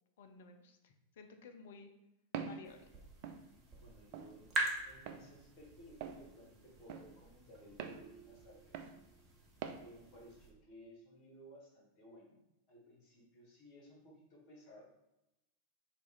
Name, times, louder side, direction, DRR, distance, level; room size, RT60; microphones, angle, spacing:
voice 1, 0.2-1.9 2.4-2.9, left 4 dB, 55° left, 6 dB, 0.4 m, -55 dB
Walk footsteps, 2.3-2.6 3.2-3.4 4.1-4.3 5.1-5.2 6.0-6.2 6.9-7.1 7.8-8.0 8.7-8.9 9.6-9.8, right 7 dB, 45° right, 0.3 m, -43 dB
sound 1, 2.6-10.5, right 2 dB, 25° right, 0.7 m, -45 dB
voice 2, 3.7-4.5 4.8-8.8 9.8-12.4 12.7-14.8, equal, 35° left, -3 dB, 1.4 m, -58 dB
Marimba xylophone, 7.9-9.6, right 5 dB, 80° right, 1.0 m, -62 dB
3.0 x 2.4 x 3.7 m, 0.91 s
figure-of-eight pair, 90°, 0 cm